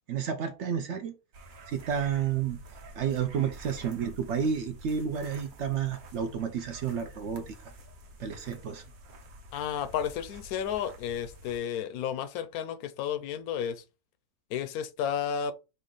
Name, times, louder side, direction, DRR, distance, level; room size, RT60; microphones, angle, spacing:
voice 1, 0.1-1.1 1.7-2.6 2.9-7.6 8.2-8.8, right 7 dB, 65° right, 0.8 m, -31 dB
sound 1, 1.3-11.6, right 1 dB, 85° right, 1.4 m, -49 dB
voice 2, 9.5-13.8 14.5-15.5, left 8 dB, 80° left, 1.0 m, -32 dB
4.4 x 2.5 x 3.7 m
omnidirectional pair, 1.5 m